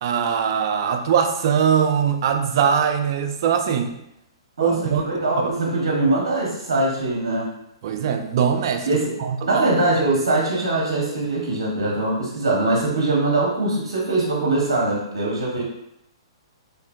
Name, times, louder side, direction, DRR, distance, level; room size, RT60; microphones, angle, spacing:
voice 1, 0.0-3.9 4.6-5.0 5.4-5.5 7.8-8.9 9.2-9.7, right 7 dB, 55° right, 6 dB, 0.3 m, -21 dB
voice 2, 4.6-7.5 8.9-9.1 9.4-15.6, right 2 dB, 70° right, -3 dB, 0.8 m, -22 dB
2.5 x 2.5 x 2.3 m, 0.81 s
hypercardioid pair, 120°, 3 cm